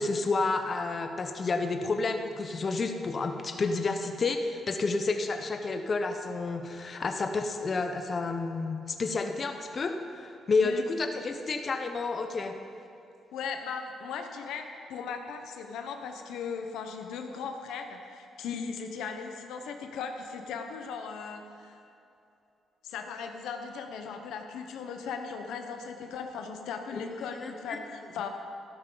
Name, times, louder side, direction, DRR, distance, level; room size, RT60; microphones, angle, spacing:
voice 1, 0.0-12.5 26.9-27.0 27.3-27.8, left 3 dB, 40° left, 5 dB, 0.8 m, -30 dB
voice 2, 13.3-14.6 14.9-21.8 22.8-27.9 28.1-28.3, left 6 dB, 85° left, 5 dB, 1.0 m, -38 dB
13.5 x 11.5 x 4.0 m, 2.7 s
cardioid pair, 90°, 0 cm